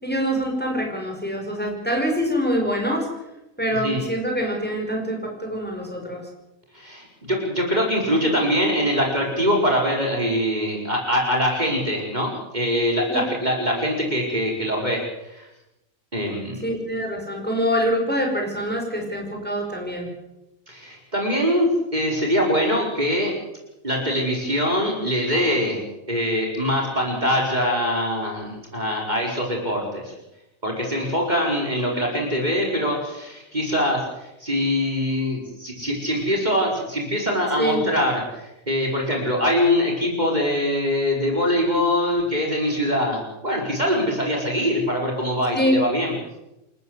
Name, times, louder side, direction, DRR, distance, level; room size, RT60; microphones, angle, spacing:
voice 1, 0.0-3.1 3.6-6.2 13.1-13.2 16.6-20.1 37.6-37.8 45.5-45.7, equal, 5° left, 1 dB, 5.8 m, -25 dB
voice 2, 6.7-15.5 16.1-16.7 20.7-23.3 23.8-25.8 26.1-30.1 30.6-46.1, equal, 30° right, -1 dB, 5.1 m, -23 dB
28.5 x 14.0 x 8.0 m, 0.92 s
omnidirectional pair, 1.4 m